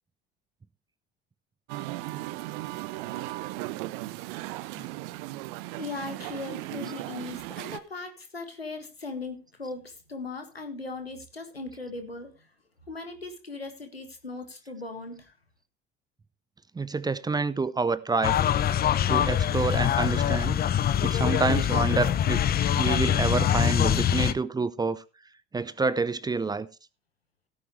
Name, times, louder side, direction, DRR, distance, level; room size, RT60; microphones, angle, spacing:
Musical instrument, 1.7-7.8, right 18 dB, 55° right, 0.7 m, -36 dB
voice 1, 5.8-12.5 12.9-15.3, left 3 dB, 90° left, 1.8 m, -38 dB
voice 2, 16.7-18.3 19.1-20.6 21.0-22.4 22.8-25.0 25.5-26.7, right 4 dB, 15° right, 0.7 m, -28 dB
sound 1, 18.2-24.3, left 10 dB, 30° left, 0.9 m, -24 dB
16.5 x 9.1 x 3.2 m
figure-of-eight pair, 65°, 30 cm